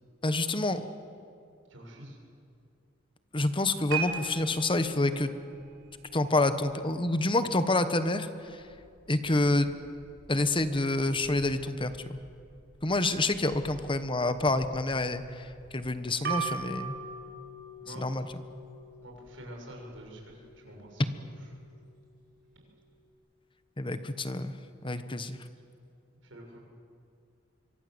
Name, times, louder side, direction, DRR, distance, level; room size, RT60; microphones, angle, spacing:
voice 1, 0.2-0.9 3.3-5.3 6.1-8.6 9.1-9.7 10.3-12.2 12.8-16.9 18.0-18.3 23.8-24.5 24.8-25.4, left 2 dB, 25° left, 10 dB, 1.2 m, -28 dB
voice 2, 1.7-2.2 17.8-18.0 19.0-21.3 26.2-26.6, right 1 dB, 85° right, 1 dB, 6.9 m, -47 dB
sound 1, 3.4-23.1, right 5 dB, 60° right, 6.1 m, -43 dB
26.0 x 24.5 x 8.0 m, 2.4 s
head